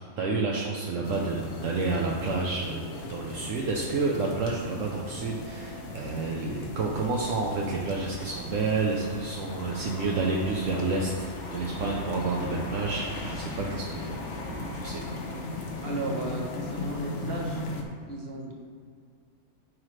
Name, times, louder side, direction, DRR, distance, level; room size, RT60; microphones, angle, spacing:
voice 1, 0.2-15.0 15.3-15.5, right 3 dB, 70° right, -2 dB, 1.1 m, -30 dB
sound 1, 1.0-17.8, left 2 dB, 60° left, 1.1 m, -38 dB
voice 2, 15.8-17.6 18.1-18.5, right 2 dB, 45° right, -2 dB, 1.5 m, -34 dB
9.7 x 5.8 x 3.2 m, 2.1 s
omnidirectional pair, 1.4 m